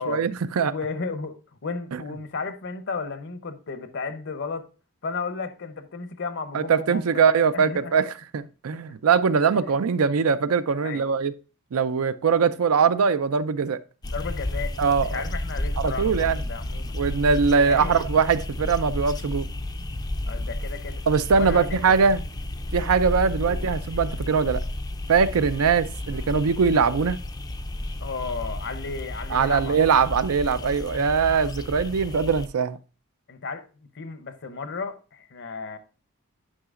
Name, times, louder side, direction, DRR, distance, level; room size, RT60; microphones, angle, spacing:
voice 1, 0.0-0.7 1.9-2.0 6.5-11.3 11.7-13.8 14.8-15.2 15.8-16.4 16.9-19.5 21.1-22.2 22.7-24.6 25.1-27.2 29.3-32.8, right 5 dB, 75° right, 0.5 m, -22 dB
voice 2, 0.7-4.7 5.0-7.2 7.5-7.9 8.9-9.0 9.6-9.7 10.8-11.2 14.0-14.7 15.1-17.0 17.6-18.0 20.3-21.0 21.3-21.8 23.4-23.7 28.0-29.9 33.3-33.6 33.9-35.8, left 4 dB, 55° left, 0.8 m, -34 dB
sound 1, 14.0-32.5, left 1 dB, 20° left, 0.4 m, -32 dB
9.9 x 5.7 x 2.5 m
head